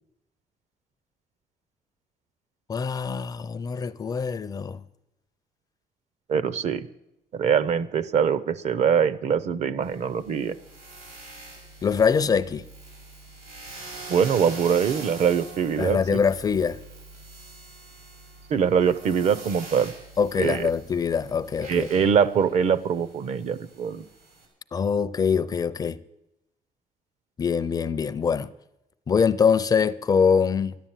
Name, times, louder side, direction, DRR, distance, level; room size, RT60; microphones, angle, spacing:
voice 1, 2.7-4.8 11.8-12.6 15.8-16.8 20.2-21.9 24.7-26.0 27.4-28.5 29.1-30.8, left 6 dB, 25° left, 0.5 m, -23 dB
voice 2, 6.3-6.9 7.3-10.6 14.1-16.0 18.5-19.9 20.4-20.7 21.7-24.0, right 7 dB, 50° right, 0.7 m, -23 dB
sound 1, 9.8-24.4, right 3 dB, 85° right, 6.9 m, -44 dB
13.5 x 11.0 x 9.0 m
cardioid pair, 170°, 15 cm